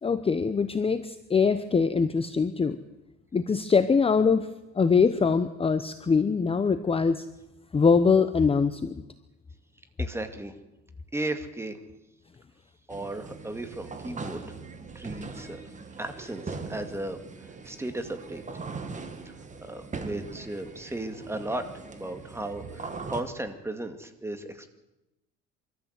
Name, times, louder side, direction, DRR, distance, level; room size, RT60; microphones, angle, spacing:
voice 1, 0.0-2.8 3.3-4.5 4.8-7.3 7.7-8.9, left 5 dB, 20° left, 11 dB, 0.8 m, -23 dB
voice 2, 10.0-10.5 11.1-11.8 12.9-14.4 14.9-15.6 16.0-18.4 19.6-21.7 21.9-24.7, right 1 dB, 10° right, 7 dB, 2.1 m, -35 dB
sound 1, 12.9-23.2, right 4 dB, 25° right, 2.2 m, -40 dB
24.5 x 14.0 x 8.2 m, 0.95 s
cardioid pair, 125°, 29 cm